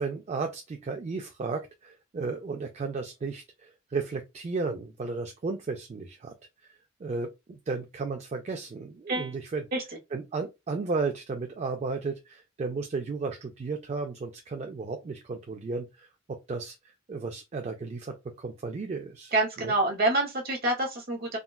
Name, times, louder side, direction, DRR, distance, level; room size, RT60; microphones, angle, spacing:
voice 1, 0.0-6.3 6.6-6.7 7.0-9.6 10.1-16.7 17.1-19.3 19.6-19.7, right 4 dB, 35° right, 0.3 m, -34 dB
voice 2, 19.3-21.4, right 2 dB, 50° right, 1.0 m, -27 dB
3.7 x 2.2 x 2.2 m
head